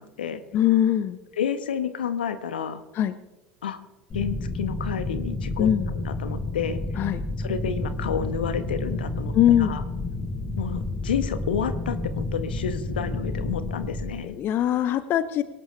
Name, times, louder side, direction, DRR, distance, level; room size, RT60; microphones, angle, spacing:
voice 1, 0.0-0.4 1.4-2.8 3.6-3.8 4.1-6.8 7.4-9.8 10.6-14.4, left 7 dB, 75° left, 12 dB, 1.2 m, -30 dB
voice 2, 0.5-1.2 2.9-3.1 5.6-5.9 7.0-7.2 9.3-9.8 14.2-15.4, left 11 dB, 45° left, 13 dB, 0.8 m, -21 dB
sound 1, 4.1-14.1, left 2 dB, 25° left, 4.1 m, -30 dB
22.0 x 18.5 x 3.3 m, 1.0 s
figure-of-eight pair, 70°, 5 cm